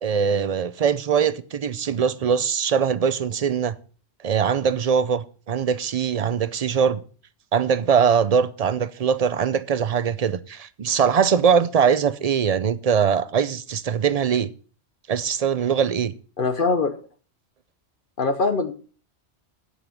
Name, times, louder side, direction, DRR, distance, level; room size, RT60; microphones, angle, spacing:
voice 1, 0.0-3.8 4.2-7.0 7.5-14.5 15.1-16.1, right 7 dB, 45° right, 0.5 m, -22 dB
voice 2, 16.4-17.0 18.2-18.7, left 4 dB, 55° left, 0.9 m, -22 dB
8.9 x 5.6 x 6.9 m
omnidirectional pair, 1.1 m